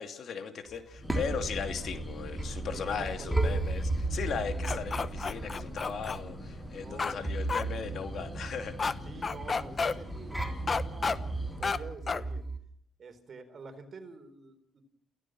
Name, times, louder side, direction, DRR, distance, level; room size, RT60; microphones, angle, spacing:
voice 1, 0.0-8.7, left 6 dB, 60° left, 6 dB, 2.7 m, -37 dB
sound 1, 0.7-12.6, right 2 dB, 5° right, 3.7 m, -35 dB
sound 2, 1.0-11.7, equal, 10° left, 7.3 m, -44 dB
voice 2, 2.7-3.4 6.8-7.3 9.0-12.5 13.0-14.8, right 4 dB, 45° right, 8 dB, 3.9 m, -47 dB
sound 3, 4.6-6.2 7.0-7.1 7.5-7.6 8.8-8.9 9.2-9.9 10.7-11.2 11.6-11.8 12.1-12.2, left 4 dB, 35° left, 1.0 m, -30 dB
29.0 x 16.0 x 6.3 m, 0.67 s
cardioid pair, 90°, 0 cm